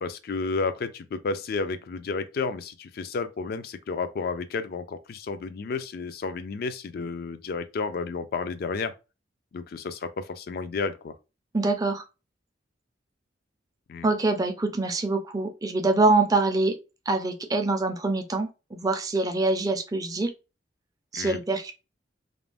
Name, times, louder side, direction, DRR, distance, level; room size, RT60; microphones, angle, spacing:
voice 1, 0.0-8.9 9.5-11.1 13.9-14.1 21.1-21.4, left 4 dB, 55° left, 0.3 m, -31 dB
voice 2, 11.5-12.0 14.0-16.7 17.1-20.3 21.1-21.7, right 3 dB, 20° right, 0.4 m, -25 dB
2.5 x 2.0 x 3.3 m
head